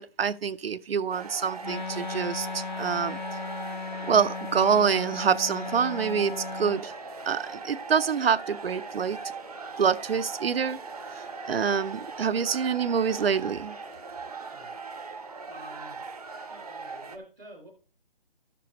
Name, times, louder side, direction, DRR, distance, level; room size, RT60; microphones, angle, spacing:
voice 1, 0.0-3.2 4.1-6.9 7.3-9.2 9.8-10.8 11.1-13.8, right 6 dB, 75° right, 0.6 m, -26 dB
sound 1, 1.1-17.2, right 4 dB, 40° right, 0.6 m, -40 dB
Wind instrument woodwind instrument, 1.6-6.8, left 4 dB, 50° left, 0.4 m, -36 dB
sound 2, 3.8-16.4, left 3 dB, 80° left, 4.6 m, -51 dB
voice 2, 14.5-16.0 16.5-17.7, right 1 dB, ahead, 0.7 m, -49 dB
14.5 x 6.8 x 2.8 m
hypercardioid pair, 170°, 30 cm